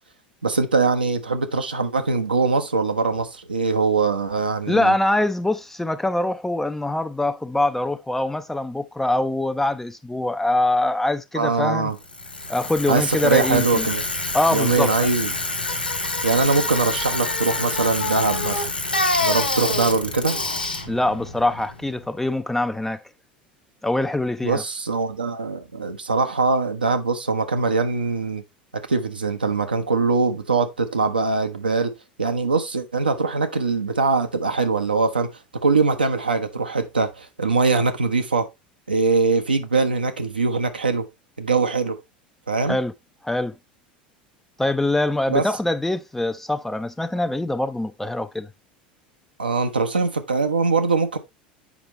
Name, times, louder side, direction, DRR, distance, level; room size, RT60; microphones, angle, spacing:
voice 1, 0.4-5.0 11.3-12.0 12.9-14.0 14.5-15.3 16.2-18.7 19.2-20.4 24.4-28.4 28.7-31.9 32.2-38.5 38.9-41.1 41.4-42.0 42.5-42.8 45.3-45.4 49.4-51.2, right 4 dB, 80° right, 0.8 m, -22 dB
voice 2, 4.7-11.9 12.5-13.9 14.3-14.9 20.9-23.0 23.8-24.6 42.7-42.9 43.2-43.5 44.6-48.5, left 2 dB, 5° left, 0.4 m, -23 dB
Bicycle, 12.0-22.1, left 2 dB, 90° left, 1.1 m, -27 dB
7.3 x 5.1 x 3.0 m
figure-of-eight pair, 75°, 5 cm